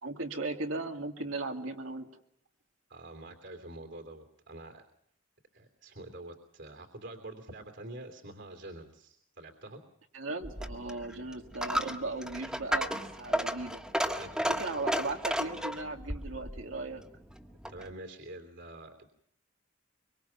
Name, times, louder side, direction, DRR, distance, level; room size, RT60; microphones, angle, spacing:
voice 1, 0.0-2.1 10.1-13.8 14.4-17.0, right 2 dB, 85° right, 3 dB, 2.5 m, -37 dB
voice 2, 2.9-4.8 5.5-9.8 14.1-14.3 14.6-14.8 17.7-19.1, right 1 dB, 60° right, 5 dB, 3.1 m, -46 dB
Coin (dropping), 10.4-17.9, equal, 5° right, 1.6 m, -34 dB
24.5 x 24.0 x 5.8 m, 0.73 s
head